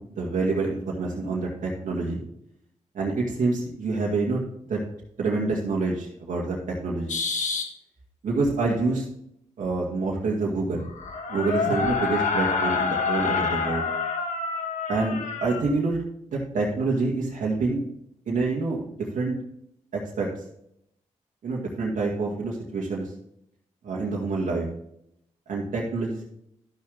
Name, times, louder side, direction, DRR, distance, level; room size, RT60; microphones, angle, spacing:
voice 1, 0.0-2.2 2.9-4.4 4.7-4.8 5.2-7.2 8.2-9.0 9.6-10.9 11.3-13.9 14.9-16.0 16.3-17.8 18.3-18.8 19.1-19.4 19.9-20.3 21.4-23.1 23.8-24.7 25.5-26.2, right 3 dB, 75° right, -4 dB, 2.1 m, -27 dB
sound 1, 7.1-7.7 10.6-15.6, left 5 dB, 70° left, 1.3 m, -27 dB
12.0 x 6.3 x 3.4 m, 0.75 s
cardioid pair, 60°, 13 cm